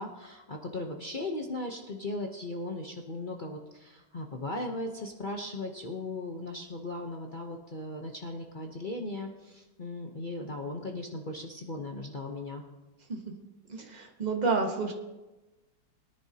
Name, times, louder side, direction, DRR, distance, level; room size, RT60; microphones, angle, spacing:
voice 1, 0.0-12.6, left 2 dB, 40° left, 1 dB, 0.7 m, -37 dB
voice 2, 13.7-14.9, right 4 dB, 25° right, 2 dB, 1.2 m, -29 dB
21.5 x 10.0 x 2.8 m, 1.1 s
omnidirectional pair, 2.0 m